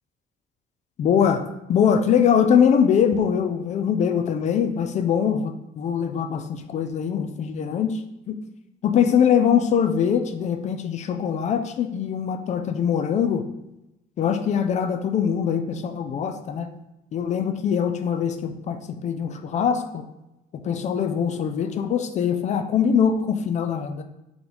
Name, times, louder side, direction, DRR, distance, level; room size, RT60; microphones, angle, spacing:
voice 1, 1.0-8.0 8.3-8.4 8.8-13.4 14.2-16.7 17.1-20.0 20.5-24.0, left 7 dB, 45° left, 7 dB, 0.4 m, -22 dB
3.8 x 2.9 x 3.8 m, 0.92 s
cardioid pair, 110°, 17 cm